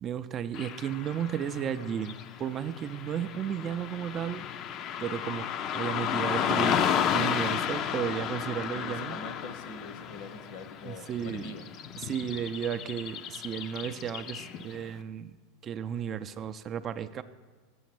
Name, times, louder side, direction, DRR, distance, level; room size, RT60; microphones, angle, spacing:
voice 1, 0.0-4.5 5.0-5.5 5.7-6.8 7.1-9.2 10.8-11.5 12.0-15.3 15.6-17.2, right 9 dB, 35° right, 12 dB, 0.3 m, -34 dB
Car passing by / Traffic noise roadway noise, 0.5-14.8, left 8 dB, 45° left, 0.4 m, -33 dB
voice 2, 8.7-11.6, left 2 dB, 60° left, 10 dB, 0.8 m, -43 dB
7.1 x 6.4 x 6.0 m, 1.4 s
hypercardioid pair, 100°, 0 cm